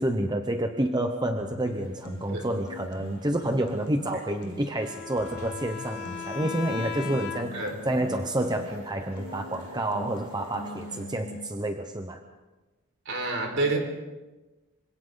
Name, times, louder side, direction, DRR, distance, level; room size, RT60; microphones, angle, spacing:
voice 1, 0.0-12.2, right 1 dB, 20° right, 5 dB, 0.9 m, -29 dB
sound 1, 1.4-11.5, left 2 dB, 85° left, 1.4 m, -44 dB
sound 2, 1.7-11.0, equal, 80° right, 6.6 m, -50 dB
Bowed string instrument, 4.8-7.8, left 7 dB, 45° left, 4.0 m, -37 dB
voice 2, 13.0-13.8, right 2 dB, 55° right, 2 dB, 4.9 m, -28 dB
27.0 x 25.5 x 4.0 m, 1.2 s
head